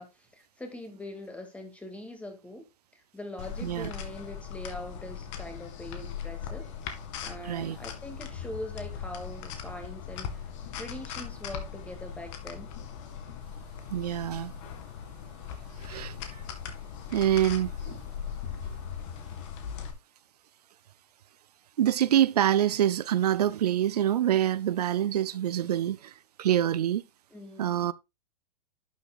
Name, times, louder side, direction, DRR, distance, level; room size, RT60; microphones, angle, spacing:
voice 1, 0.0-2.7 2.9-6.7 7.2-12.7 27.3-27.9, left 1 dB, 5° left, 2.1 m, -42 dB
sound 1, 3.4-19.9, left 7 dB, 50° left, 2.2 m, -39 dB
voice 2, 7.5-7.8 13.9-14.5 15.8-16.2 17.1-18.0 21.8-27.0 27.6-27.9, right 11 dB, 85° right, 0.5 m, -26 dB
11.5 x 7.1 x 2.4 m
hypercardioid pair, 130°, 20 cm